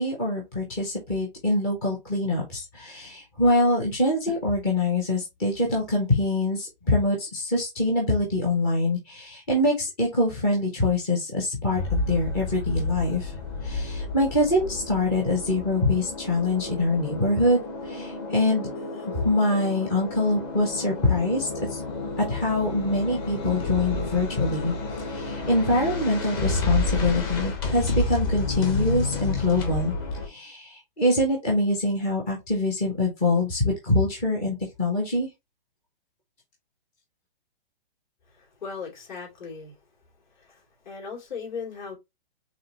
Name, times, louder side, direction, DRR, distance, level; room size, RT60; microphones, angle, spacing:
voice 1, 0.0-13.3 13.6-18.7 19.1-21.8 22.2-24.7 25.0-29.9 30.2-35.3, left 2 dB, 10° left, 0.4 m, -24 dB
sound 1, 11.7-30.3, left 3 dB, 25° left, 0.9 m, -30 dB
voice 2, 38.3-39.8 40.3-42.0, left 5 dB, 50° left, 2.9 m, -38 dB
4.9 x 3.3 x 2.8 m
hypercardioid pair, 170°, 29 cm